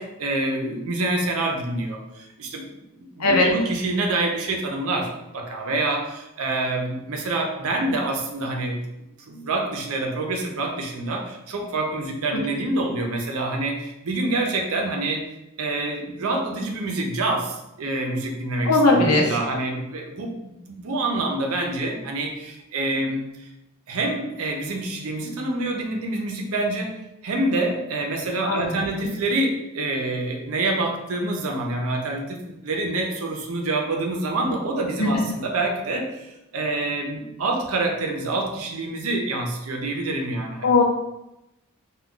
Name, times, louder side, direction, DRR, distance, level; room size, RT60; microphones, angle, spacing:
voice 1, 0.2-2.7 3.0-15.2 15.6-23.5 23.9-26.9 27.2-40.8, right 2 dB, 70° right, 1 dB, 0.6 m, -27 dB
voice 2, 18.6-19.3 28.4-28.7 29.0-29.1 35.0-35.2 40.6-40.8, left 2 dB, 80° left, 0 dB, 0.6 m, -19 dB
2.3 x 2.2 x 3.7 m, 0.90 s
head